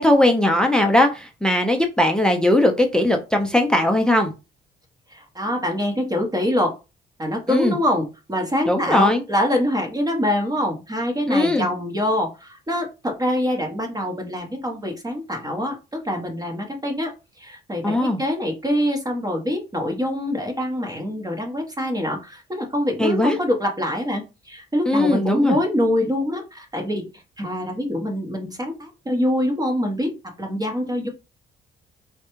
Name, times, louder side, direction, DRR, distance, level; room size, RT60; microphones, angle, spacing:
voice 1, 0.0-4.3 7.5-7.8 8.7-9.2 11.3-11.7 17.8-18.2 23.0-23.4 24.9-25.6, left 1 dB, 5° left, 4 dB, 0.5 m, -19 dB
voice 2, 5.1-6.7 7.2-17.1 17.4-27.1 27.4-31.1, left 1 dB, 20° right, 3 dB, 0.8 m, -25 dB
3.2 x 2.2 x 3.0 m, 0.28 s
cardioid pair, 90°, 20 cm